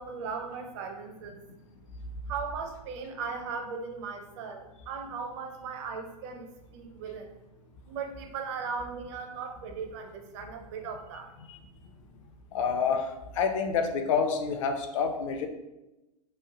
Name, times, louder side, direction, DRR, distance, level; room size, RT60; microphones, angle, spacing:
voice 1, 0.0-1.4 2.2-7.3 7.9-11.3, right 5 dB, 45° right, 5 dB, 0.6 m, -38 dB
voice 2, 12.5-15.5, left 6 dB, 50° left, 6 dB, 0.5 m, -28 dB
3.1 x 2.2 x 3.6 m, 0.99 s
hypercardioid pair, 110°, 21 cm